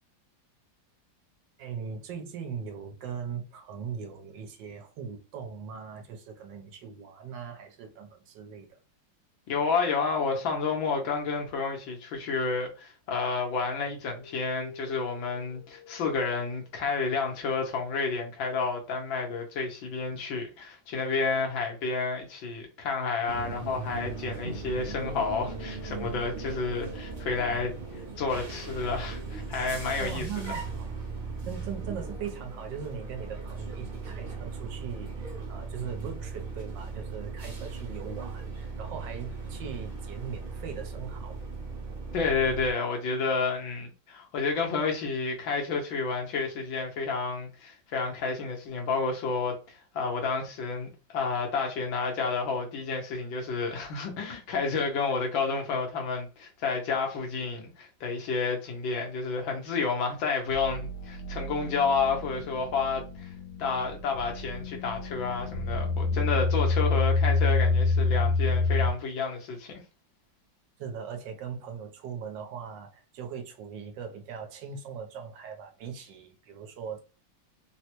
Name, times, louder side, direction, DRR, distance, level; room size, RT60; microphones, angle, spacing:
voice 1, 1.6-8.8 30.0-30.9 31.5-41.4 70.8-77.0, right 7 dB, 75° right, 1.4 m, -40 dB
voice 2, 9.5-27.7 28.2-30.5 42.1-63.3 63.6-69.8, left 4 dB, 90° left, 1.7 m, -30 dB
sound 1, 13.2-17.3 21.4-22.8 23.7-29.2, left 3 dB, 30° left, 0.5 m, -50 dB
sound 2, 23.2-42.7, right 4 dB, 55° right, 0.5 m, -38 dB
sound 3, 60.5-68.9, left 3 dB, 70° left, 1.2 m, -28 dB
3.9 x 2.1 x 2.9 m
omnidirectional pair, 2.0 m